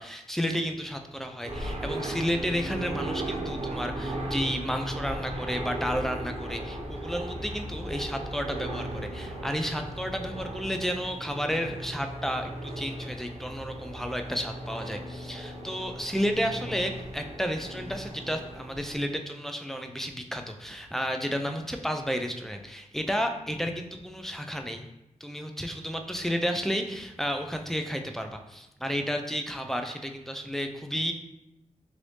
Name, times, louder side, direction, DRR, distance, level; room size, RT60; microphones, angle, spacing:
voice 1, 0.0-24.9 25.2-31.1, equal, 5° left, 4 dB, 0.3 m, -32 dB
sound 1, 1.4-19.0, right 1 dB, 55° right, 0.7 m, -36 dB
3.2 x 2.6 x 3.1 m, 0.88 s
wide cardioid pair, 90°, 13 cm